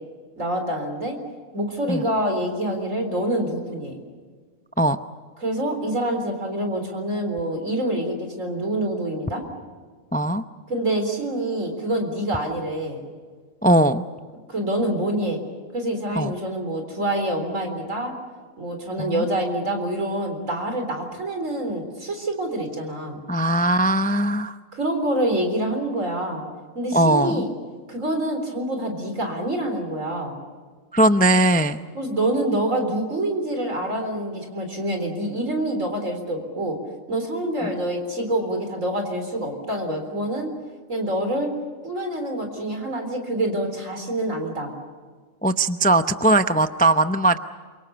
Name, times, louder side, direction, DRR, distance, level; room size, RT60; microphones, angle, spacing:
voice 1, 0.4-1.2 1.5-4.0 5.4-9.4 10.7-13.0 14.5-15.4 15.7-18.1 18.6-23.2 24.7-26.4 26.7-27.5 27.9-30.4 31.9-36.8 37.1-40.5 40.9-41.5 41.8-44.7, right 1 dB, 80° right, 5 dB, 4.3 m, -26 dB
voice 2, 10.1-10.4 13.6-14.0 16.2-16.3 19.0-19.3 23.3-24.6 26.9-27.4 30.9-31.8 37.6-37.7 45.4-47.4, right 1 dB, 10° left, 10 dB, 0.4 m, -19 dB
27.5 x 24.5 x 6.9 m, 1.6 s
omnidirectional pair, 1.3 m